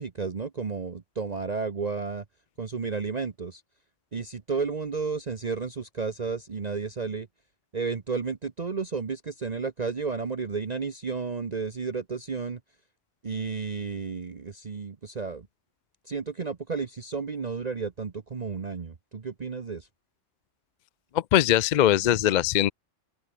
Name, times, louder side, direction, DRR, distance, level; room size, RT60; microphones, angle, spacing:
voice 1, 0.0-2.2 2.6-3.6 4.1-7.3 7.7-12.6 13.2-15.5 16.0-19.9, right 4 dB, 35° right, 1.0 m, -32 dB
voice 2, 21.1-22.7, left 11 dB, 55° left, 0.5 m, -21 dB
open air
omnidirectional pair, 1.3 m